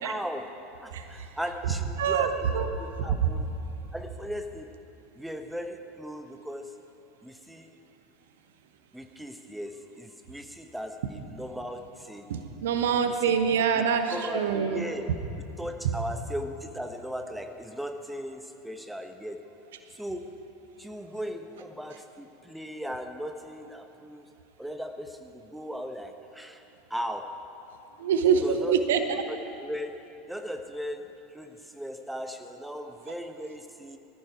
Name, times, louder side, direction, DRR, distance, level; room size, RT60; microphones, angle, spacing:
voice 1, 0.0-3.5 3.9-4.7 5.1-6.7 7.2-7.7 8.9-12.3 13.1-13.3 13.7-15.0 15.6-19.4 19.9-20.4 20.8-24.3 24.6-26.6 26.9-27.4 28.4-28.8 29.1-30.0 30.3-34.0, equal, 5° right, 6 dB, 1.1 m, -37 dB
voice 2, 2.0-2.7 12.3-14.8 28.0-29.0, right 7 dB, 65° right, 7 dB, 1.1 m, -25 dB
20.0 x 14.5 x 4.8 m, 2.9 s
figure-of-eight pair, 80°, 0 cm